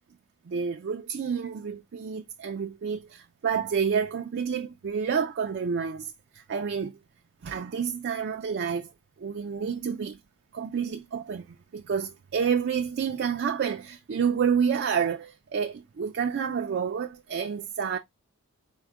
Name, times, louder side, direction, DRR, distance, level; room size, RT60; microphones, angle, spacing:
voice 1, 0.5-6.9 7.4-8.9 9.2-10.2 10.5-18.0, right 6 dB, 50° right, 0.3 m, -29 dB
4.5 x 2.1 x 3.6 m
head